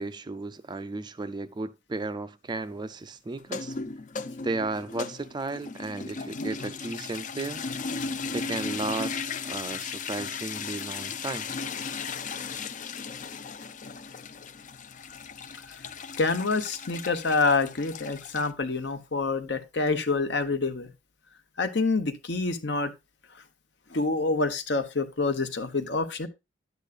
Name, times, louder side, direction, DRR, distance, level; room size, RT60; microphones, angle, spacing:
voice 1, 0.0-3.8 4.4-7.7 8.3-11.5, right 3 dB, 25° right, 0.3 m, -34 dB
sound 1, 3.4-18.5, left 5 dB, 40° left, 0.5 m, -36 dB
voice 2, 16.2-20.9 21.6-22.9 23.9-26.3, left 3 dB, 65° left, 1.0 m, -27 dB
11.0 x 8.2 x 2.4 m
head